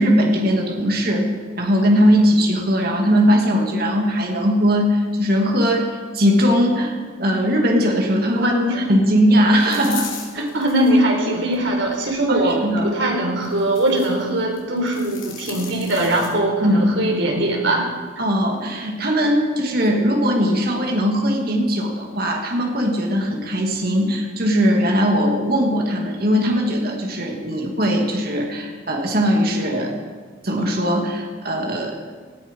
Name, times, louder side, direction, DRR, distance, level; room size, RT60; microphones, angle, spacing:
voice 1, 0.0-8.5 8.9-10.1 10.3-10.5 12.3-12.9 16.6-16.8 18.2-30.0 30.4-32.0, equal, 50° right, 1 dB, 2.6 m, -19 dB
voice 2, 8.3-8.8 10.3-17.9, right 1 dB, 70° right, 0 dB, 4.2 m, -21 dB
sound 1, 9.7-10.9 11.5-12.1 13.4-14.2 14.6-16.3, left 6 dB, 80° left, 3.7 m, -36 dB
18.5 x 14.0 x 5.5 m, 1.5 s
head